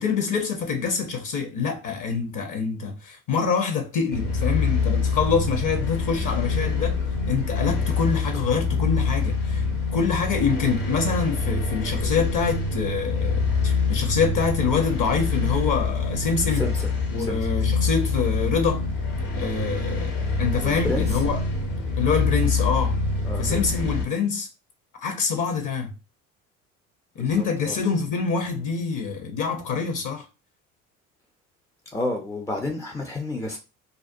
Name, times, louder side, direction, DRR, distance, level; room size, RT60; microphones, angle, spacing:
voice 1, 0.0-7.0 7.3-9.6 9.9-16.7 17.1-18.8 19.4-21.4 22.0-23.0 23.4-24.5 25.0-25.9 27.2-30.2, left 5 dB, 50° left, 0.7 m, -25 dB
sound 1, 4.1-24.0, left 4 dB, 65° left, 1.0 m, -25 dB
voice 2, 16.6-16.9 17.2-17.4 20.6-21.1 23.2-23.7 27.2-27.8 31.9-33.6, left 2 dB, 10° left, 0.3 m, -30 dB
2.4 x 2.2 x 2.5 m
hypercardioid pair, 60°, 42 cm